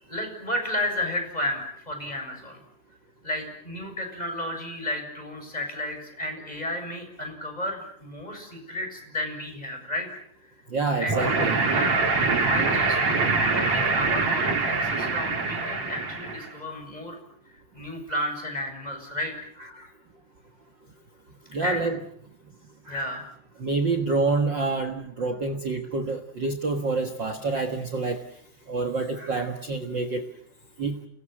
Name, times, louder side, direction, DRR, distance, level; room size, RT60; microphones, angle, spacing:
voice 1, 0.1-2.6 3.2-10.1 10.4-10.5 11.0-11.2 11.7-13.0 13.2-17.2 17.7-19.5 21.6-21.8 22.9-23.2, left 1 dB, 10° left, 4 dB, 7.1 m, -32 dB
voice 2, 10.7-11.6 19.7-19.9 21.5-22.0 22.9-23.0 23.6-28.2 28.7-30.2 30.8-31.0, right 3 dB, 70° right, 9 dB, 1.0 m, -27 dB
sound 1, 11.1-16.5, right 4 dB, 40° right, 4.8 m, -24 dB
29.0 x 21.0 x 7.9 m, 0.66 s
omnidirectional pair, 4.8 m